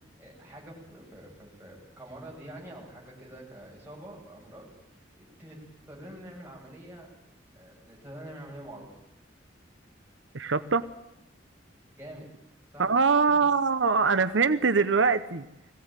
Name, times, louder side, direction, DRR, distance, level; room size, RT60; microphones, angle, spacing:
voice 1, 0.2-5.6 5.9-7.1 7.5-9.0 11.9-12.3 12.7-12.9 13.2-13.4, right 1 dB, 10° right, -4 dB, 7.6 m, -46 dB
voice 2, 10.3-10.8 12.8-15.5, right 5 dB, 80° right, 11 dB, 0.9 m, -23 dB
21.0 x 16.5 x 9.0 m, 0.90 s
head